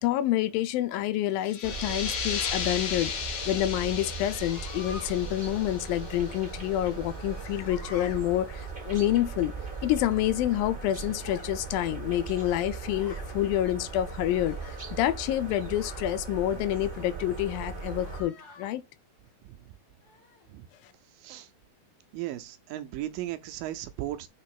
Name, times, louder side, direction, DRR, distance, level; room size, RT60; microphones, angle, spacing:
voice 1, 0.0-3.1 3.5-9.5 9.8-18.8, left 13 dB, 80° left, 2.3 m, -28 dB
sound 1, 1.4-6.8, left 6 dB, 55° left, 2.3 m, -35 dB
sound 2, 1.6-18.2, right 4 dB, 45° right, 0.7 m, -38 dB
sound 3, 4.0-5.1 6.8-8.2 11.1-11.5 12.4-13.3 14.6-15.0 15.7-16.2 17.9-18.7 20.0-20.5, left 3 dB, 40° left, 1.4 m, -48 dB
voice 2, 21.2-21.5 22.1-24.3, right 14 dB, 80° right, 2.2 m, -36 dB
6.5 x 3.4 x 5.8 m
omnidirectional pair, 4.3 m